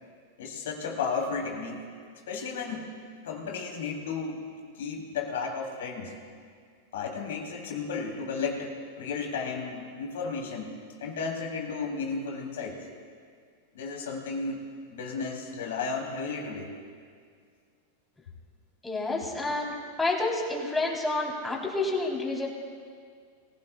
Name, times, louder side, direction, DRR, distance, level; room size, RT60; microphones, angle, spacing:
voice 1, 0.4-2.9 3.2-4.4 4.7-6.1 6.9-10.7 11.0-12.9 13.7-14.6 14.9-16.7, left 5 dB, 75° left, 0 dB, 3.4 m, -33 dB
voice 2, 18.8-22.5, left 2 dB, 10° left, -3 dB, 3.9 m, -29 dB
23.0 x 16.0 x 2.4 m, 2.1 s
hypercardioid pair, 100°, 0 cm